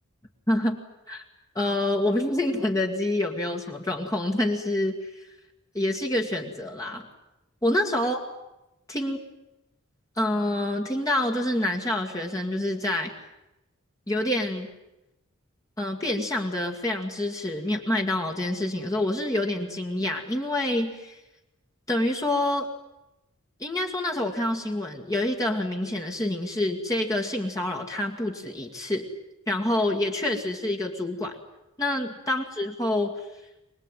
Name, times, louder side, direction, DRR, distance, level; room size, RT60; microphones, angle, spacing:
voice 1, 0.5-0.8 1.1-1.2 1.6-5.2 5.7-7.1 7.6-8.2 8.9-9.2 10.2-13.1 14.1-14.7 15.8-21.2 21.9-22.7 23.6-29.1 29.5-31.4 31.8-33.1, left 1 dB, 15° left, 1 dB, 2.1 m, -27 dB
25.0 x 20.0 x 9.2 m, 0.92 s
head